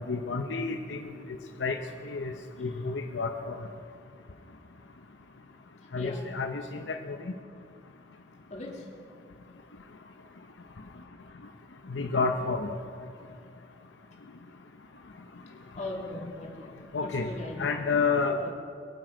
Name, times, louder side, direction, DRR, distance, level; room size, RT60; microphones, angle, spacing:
voice 1, 0.1-1.0 1.6-1.8 2.1-2.3 2.6-3.6 5.9-7.2 11.9-12.7 16.9-17.3 17.6-18.4, left 4 dB, 85° left, 5 dB, 0.7 m, -29 dB
voice 2, 8.5-8.9 15.8-16.7 17.0-17.7 18.4-18.5, left 2 dB, 40° left, -1 dB, 2.4 m, -39 dB
22.5 x 7.8 x 5.1 m, 2.3 s
head